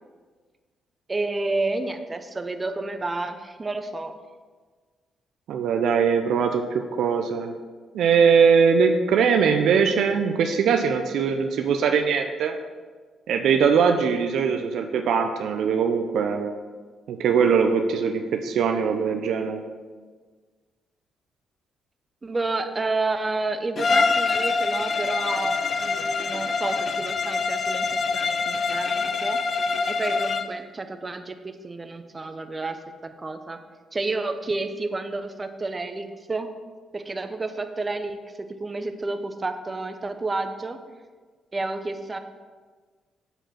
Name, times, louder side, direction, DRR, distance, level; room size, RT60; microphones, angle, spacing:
voice 1, 1.1-4.2 22.2-27.9 28.1-29.4 29.9-32.8 33.0-33.6 33.9-36.5 36.9-38.2 38.5-40.8 41.5-42.2, right 3 dB, 30° right, 8 dB, 0.7 m, -30 dB
voice 2, 5.5-7.5 7.9-12.5 13.3-16.5 17.1-19.6, right 6 dB, 70° right, 5 dB, 0.5 m, -21 dB
Bowed string instrument, 23.8-30.6, left 4 dB, 50° left, 0.4 m, -25 dB
6.9 x 4.5 x 5.8 m, 1.5 s
hypercardioid pair, 50°, 0 cm